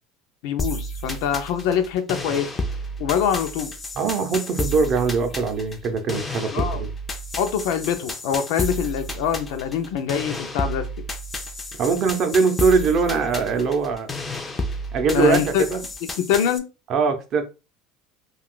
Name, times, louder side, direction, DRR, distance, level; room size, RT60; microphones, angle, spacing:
voice 1, 0.4-2.5 3.0-3.7 6.5-6.9 7.4-10.9 15.1-15.6 16.2-16.7, left 8 dB, 75° left, 0.5 m, -24 dB
sound 1, 0.6-16.6, left 1 dB, 15° left, 0.4 m, -31 dB
voice 2, 4.0-6.9 11.8-14.1 14.9-15.8 16.9-17.4, right 5 dB, 40° right, 0.6 m, -22 dB
2.4 x 2.4 x 3.6 m
cardioid pair, 150°, 0 cm